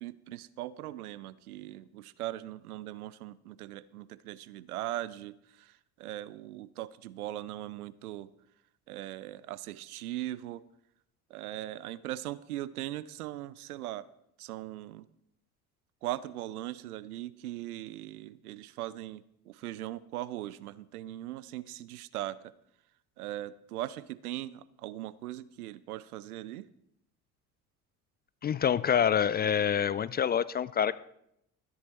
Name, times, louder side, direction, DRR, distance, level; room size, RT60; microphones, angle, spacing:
voice 1, 0.0-8.3 8.9-10.6 11.3-14.1 14.4-15.1 16.0-22.4 23.2-26.7, right 14 dB, 85° right, 19 dB, 0.6 m, -39 dB
voice 2, 28.4-30.9, left 8 dB, 25° left, 18 dB, 0.3 m, -26 dB
13.5 x 10.0 x 4.2 m, 0.78 s
hypercardioid pair, 55°, 43 cm